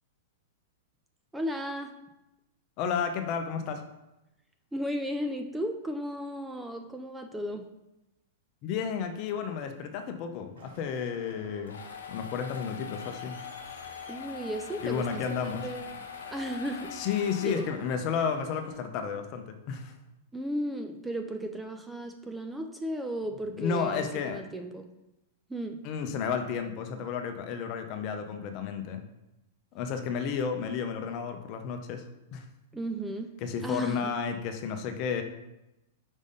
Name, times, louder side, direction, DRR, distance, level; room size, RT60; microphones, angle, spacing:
voice 1, 1.3-1.9 4.7-7.7 14.1-16.9 17.4-17.7 20.3-24.9 25.5-25.8 32.7-33.3 33.6-34.1, equal, 5° right, 5 dB, 0.5 m, -35 dB
voice 2, 2.8-3.8 8.6-11.8 12.1-13.4 14.8-15.6 17.0-19.9 23.5-24.4 25.8-29.0 29.7-32.0 32.3-32.5 33.4-35.2, left 6 dB, 45° left, 6 dB, 0.8 m, -32 dB
Crowd, 10.6-18.7, right 1 dB, 80° right, 1.6 m, -53 dB
sound 1, 11.4-18.1, left 7 dB, 85° left, 0.8 m, -42 dB
5.4 x 3.5 x 5.4 m, 0.92 s
hypercardioid pair, 125°, 0 cm